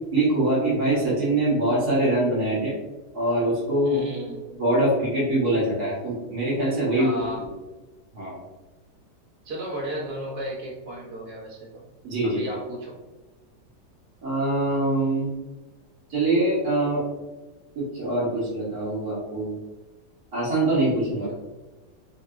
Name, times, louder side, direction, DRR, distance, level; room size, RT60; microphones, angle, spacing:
voice 1, 0.1-2.8 3.1-4.0 4.6-7.2 8.1-8.4 12.0-12.4 14.2-15.3 16.1-17.0 17.7-19.6 20.3-21.3, right 1 dB, 60° right, -7 dB, 1.7 m, -23 dB
voice 2, 3.8-4.5 6.9-7.4 9.4-11.8 12.2-12.9 21.1-21.4, right 1 dB, 40° right, -7 dB, 1.4 m, -34 dB
4.3 x 2.8 x 2.5 m, 1.2 s
omnidirectional pair, 1.9 m